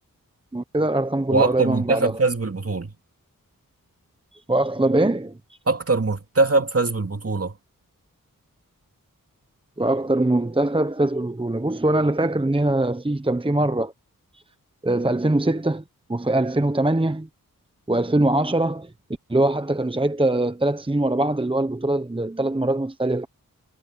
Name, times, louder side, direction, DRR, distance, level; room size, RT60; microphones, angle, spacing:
voice 1, 0.5-2.2 4.5-5.4 9.8-13.9 14.8-15.8 16.1-17.3 17.9-18.9 19.3-23.3, right 1 dB, 15° right, 0.9 m, -22 dB
voice 2, 1.3-2.9 5.7-7.5, right 3 dB, 45° right, 2.4 m, -22 dB
wide cardioid pair, 65°, 34 cm